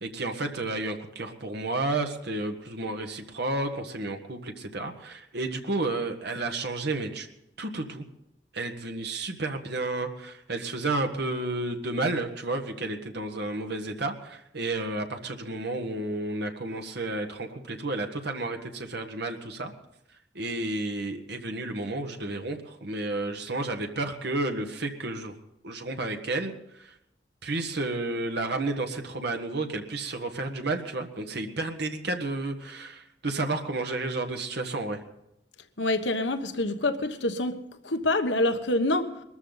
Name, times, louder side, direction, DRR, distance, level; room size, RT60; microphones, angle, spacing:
voice 1, 0.0-7.3 7.6-8.0 8.5-19.7 20.3-25.3 25.6-26.9 27.4-35.0, right 2 dB, 65° right, 4 dB, 1.5 m, -31 dB
voice 2, 35.8-37.6 37.8-39.1, left 2 dB, 80° left, 8 dB, 1.3 m, -26 dB
22.0 x 14.0 x 4.0 m, 0.84 s
head